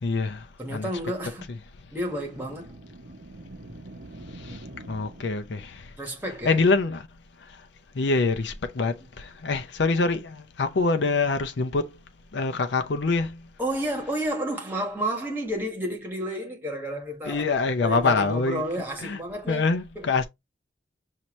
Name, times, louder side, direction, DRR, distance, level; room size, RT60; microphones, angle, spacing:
voice 1, 0.0-0.9 4.4-4.6 4.9-5.9 6.4-7.1 7.9-11.9 12.3-13.4 17.2-18.6 19.0-19.2 19.5-20.3, left 3 dB, 75° left, 0.6 m, -25 dB
voice 2, 0.6-1.5 1.9-2.8 6.0-6.6 13.6-17.5 17.8-19.7 19.9-20.1, equal, 10° right, 1.5 m, -31 dB
sound 1, 1.9-5.7, right 1 dB, 75° right, 0.9 m, -44 dB
5.8 x 2.8 x 3.1 m
head